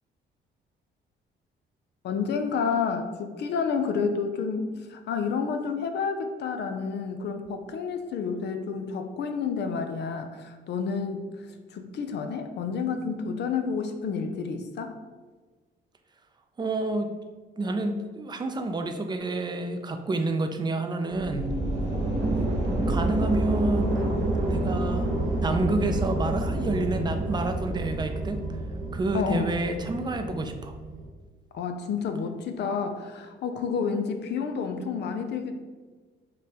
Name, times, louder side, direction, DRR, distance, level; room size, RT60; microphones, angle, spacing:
voice 1, 2.0-15.0 29.1-29.6 31.5-35.5, left 5 dB, 60° left, 6 dB, 0.4 m, -30 dB
voice 2, 16.6-17.1 17.6-21.5 22.4-22.5 22.9-24.0 24.5-25.1 25.4-28.4 28.9-30.7, right 2 dB, 20° right, 6 dB, 0.4 m, -29 dB
sound 1, 21.1-31.0, right 1 dB, 85° right, 1.1 m, -28 dB
5.1 x 2.2 x 2.8 m, 1.4 s
cardioid pair, 90°, 20 cm